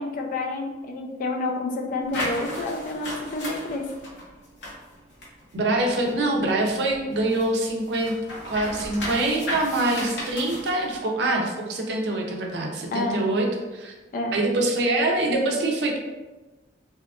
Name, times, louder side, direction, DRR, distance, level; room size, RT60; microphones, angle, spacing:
voice 1, 0.0-3.8 12.9-13.2 14.1-14.3, left 2 dB, 50° left, 2 dB, 0.4 m, -29 dB
sound 1, 2.1-6.3 6.7-11.0, left 1 dB, 85° left, 0.7 m, -35 dB
voice 2, 5.5-8.1 8.5-13.5 13.7-13.9 14.3-16.0, right 2 dB, 70° right, 1 dB, 0.4 m, -24 dB
2.7 x 2.3 x 2.3 m, 1.2 s
head